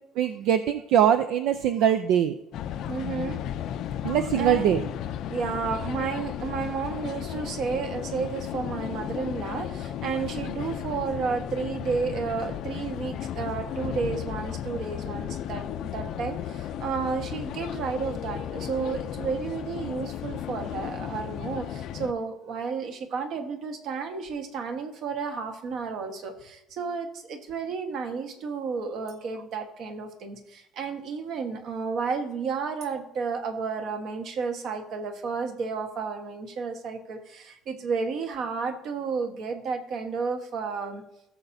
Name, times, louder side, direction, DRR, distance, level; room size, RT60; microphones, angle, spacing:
voice 1, 0.2-2.3 4.0-4.8, right 10 dB, 65° right, 9 dB, 0.5 m, -22 dB
sound 1, 2.5-22.1, left 10 dB, 50° left, 0.5 m, -34 dB
voice 2, 2.9-3.4 4.4-4.9 5.3-41.0, right 5 dB, 50° right, 6 dB, 1.3 m, -32 dB
17.0 x 7.0 x 2.7 m, 0.82 s
cardioid pair, 165°, 0 cm